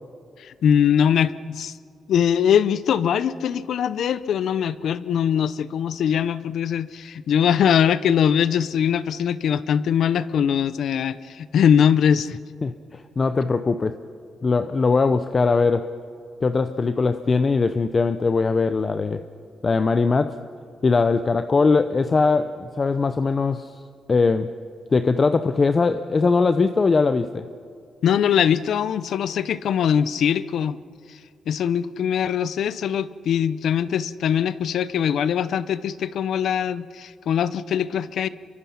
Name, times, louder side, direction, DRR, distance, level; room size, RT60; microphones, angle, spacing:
voice 1, 0.4-1.7 2.1-12.4 28.0-30.8 31.5-38.3, left 8 dB, 70° left, 16 dB, 0.6 m, -22 dB
voice 2, 12.6-14.0 14.4-15.9 16.4-19.2 19.6-20.4 20.8-23.7 24.1-24.5 24.9-27.5, left 4 dB, 35° left, 10 dB, 0.7 m, -21 dB
26.0 x 23.5 x 5.8 m, 2.3 s
cardioid pair, 105°, 0 cm